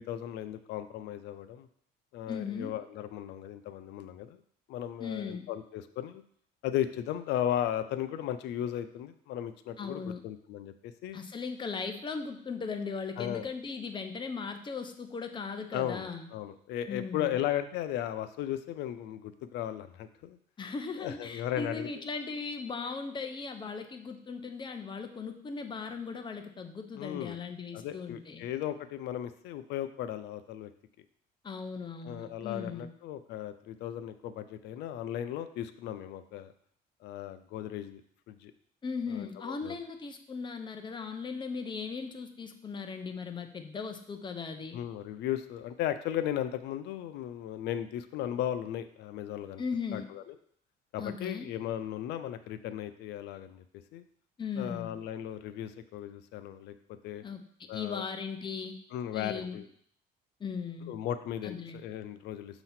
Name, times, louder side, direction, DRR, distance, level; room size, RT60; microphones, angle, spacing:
voice 1, 0.0-1.7 2.1-4.4 4.7-6.2 6.6-11.2 13.2-13.5 15.7-20.4 21.0-21.9 26.9-27.4 27.7-30.7 32.0-36.5 37.0-38.0 38.3-38.5 39.1-39.8 44.7-49.6 49.9-50.2 50.9-53.6 53.9-54.0 54.6-56.7 57.0-57.2 57.7-58.0 58.9-59.6 60.9-61.6 61.8-62.6, left 11 dB, 80° left, 11 dB, 0.5 m, -36 dB
voice 2, 2.3-2.7 5.0-5.5 9.8-10.2 11.1-16.3 16.9-17.3 20.6-28.4 31.4-32.9 38.8-44.8 49.6-50.1 51.0-51.5 54.4-54.9 57.2-58.8 59.1-59.6 60.4-60.9 61.4-61.8, left 5 dB, 25° left, 6 dB, 0.8 m, -38 dB
6.5 x 3.0 x 5.7 m, 0.63 s
cardioid pair, 110°, 17 cm